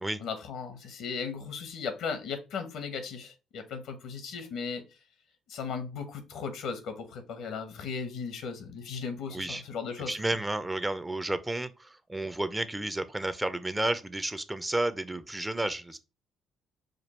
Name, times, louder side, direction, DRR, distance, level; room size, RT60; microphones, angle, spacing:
voice 1, 0.2-4.8 5.5-10.3, left 5 dB, 75° left, 1.0 m, -37 dB
voice 2, 9.3-9.6 10.1-16.0, right 2 dB, 15° right, 0.5 m, -31 dB
5.1 x 2.3 x 4.3 m
supercardioid pair, 70°, 0 cm